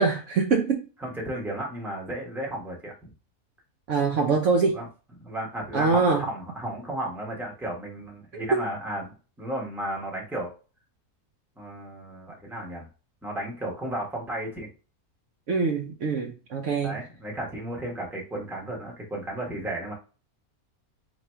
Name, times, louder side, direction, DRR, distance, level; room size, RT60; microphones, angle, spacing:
voice 1, 0.0-0.9 3.9-4.8 5.7-6.3 8.3-8.6 15.5-17.0, right 4 dB, 65° right, 0.8 m, -24 dB
voice 2, 1.0-2.9 4.7-4.9 5.2-9.1 9.4-10.5 11.6-12.9 13.2-14.7 16.8-19.9, right 1 dB, ahead, 0.9 m, -34 dB
3.0 x 2.6 x 4.3 m
omnidirectional pair, 1.6 m